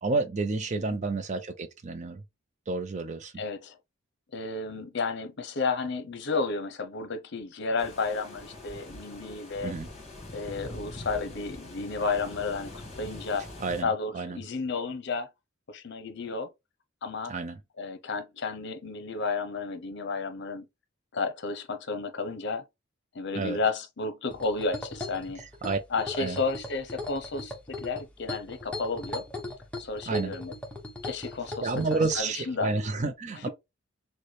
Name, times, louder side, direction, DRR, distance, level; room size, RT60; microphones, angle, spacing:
voice 1, 0.0-2.2 2.7-3.3 9.6-9.9 13.6-14.4 17.3-17.6 23.4-23.6 25.4-25.8 26.2-26.4 30.1-30.3 31.6-33.5, right 3 dB, 35° right, 0.5 m, -30 dB
voice 2, 3.4-3.8 4.3-9.7 10.3-13.5 13.8-15.3 15.7-16.5 17.0-17.3 17.8-20.6 21.1-22.6 23.1-25.4 25.9-29.2 29.8-30.5 31.0-32.7, left 4 dB, 60° left, 0.8 m, -32 dB
sound 1, 7.8-13.8, left 1 dB, 35° left, 1.8 m, -43 dB
sound 2, 24.3-32.2, left 2 dB, 5° left, 1.0 m, -39 dB
6.6 x 2.2 x 3.2 m
head